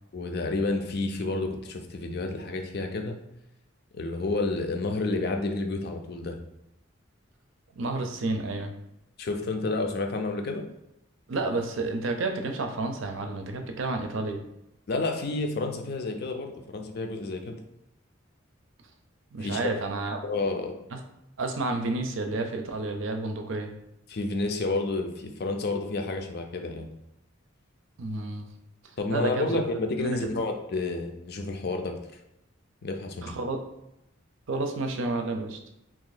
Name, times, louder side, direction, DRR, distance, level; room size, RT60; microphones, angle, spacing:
voice 1, 0.1-3.2 3.9-6.4 9.2-10.6 14.9-17.6 19.4-19.8 20.2-20.8 24.1-26.9 29.0-32.2 32.8-33.3, left 2 dB, 50° left, 4 dB, 0.5 m, -30 dB
voice 2, 7.7-8.7 11.3-14.4 19.3-20.2 20.9-21.0 21.4-23.7 28.0-28.5 29.1-29.5 30.0-30.3 33.2-33.6 34.5-35.6, right 2 dB, 70° right, 5 dB, 0.5 m, -30 dB
2.8 x 2.6 x 3.9 m, 0.84 s
head